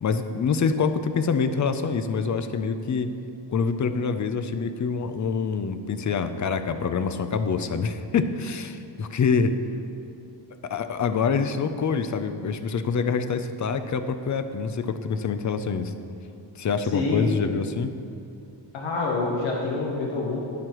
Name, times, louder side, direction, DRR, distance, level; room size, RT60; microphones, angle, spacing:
voice 1, 0.0-3.1 3.5-9.5 10.6-15.9 16.6-17.9, left 5 dB, 40° left, 9 dB, 0.5 m, -26 dB
voice 2, 16.9-17.3 18.7-20.4, left 3 dB, 75° left, -3 dB, 1.4 m, -26 dB
12.5 x 9.8 x 3.1 m, 2.6 s
wide cardioid pair, 130°, 46 cm